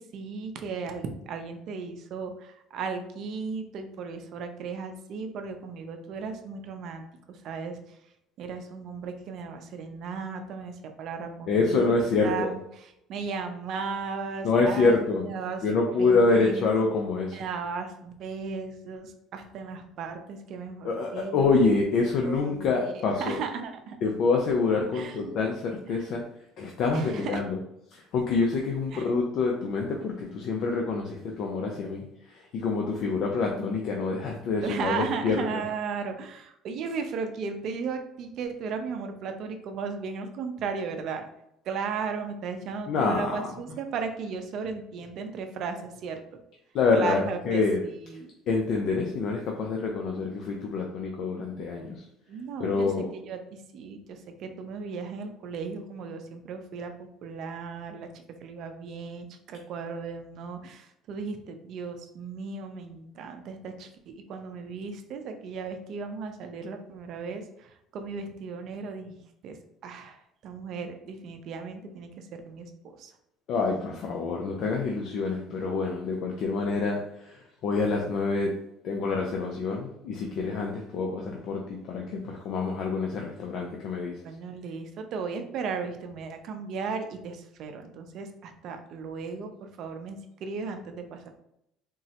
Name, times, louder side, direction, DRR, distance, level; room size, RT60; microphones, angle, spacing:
voice 1, 0.0-8.0 8.4-15.6 16.0-16.7 17.3-21.5 22.2-24.0 24.9-25.5 25.9-26.0 26.9-27.4 28.9-29.1 34.6-41.3 41.6-46.2 46.9-48.3 52.3-56.9 57.2-69.2 69.4-69.6 69.8-72.7 73.0-73.1 84.2-91.3, right 5 dB, 60° right, 6 dB, 0.5 m, -36 dB
voice 2, 11.5-12.5 14.4-15.3 15.6-17.4 20.8-23.4 24.0-26.2 26.6-27.6 27.9-35.6 42.9-43.4 46.7-47.8 48.5-52.1 52.6-53.1 73.5-78.5 78.8-84.2, left 4 dB, 60° left, 1 dB, 0.5 m, -26 dB
3.6 x 2.0 x 2.8 m, 0.78 s
supercardioid pair, 90°, 0 cm